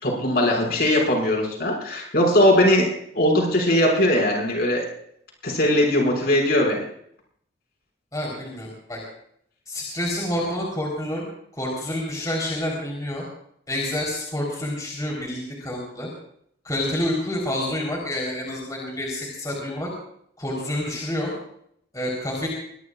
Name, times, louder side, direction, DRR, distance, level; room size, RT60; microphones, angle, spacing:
voice 1, 0.0-2.9 3.1-4.9 5.4-6.8, left 1 dB, 50° left, -1 dB, 6.2 m, -20 dB
voice 2, 8.1-9.0 9.7-11.3 11.5-13.2 13.7-16.1 16.6-19.9 20.4-21.3 21.9-22.5, left 1 dB, 20° left, -2 dB, 4.0 m, -28 dB
23.5 x 20.5 x 2.5 m, 0.69 s
head